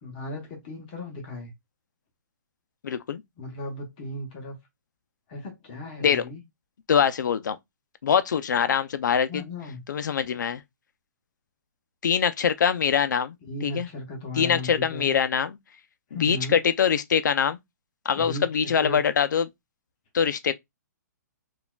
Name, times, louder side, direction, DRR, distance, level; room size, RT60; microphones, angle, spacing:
voice 1, 0.0-1.5 3.4-4.6 5.3-6.4 9.3-9.8 13.4-15.1 16.1-16.6 18.1-19.0, left 2 dB, 30° left, 0.8 m, -36 dB
voice 2, 2.8-3.2 6.0-6.2 6.9-7.6 8.0-9.4 9.9-10.6 12.0-13.4 13.6-13.9 14.4-15.6 16.1-17.6 18.1-19.5 20.1-20.5, left 7 dB, 80° left, 0.4 m, -23 dB
4.0 x 2.4 x 2.2 m
hypercardioid pair, 160°, 10 cm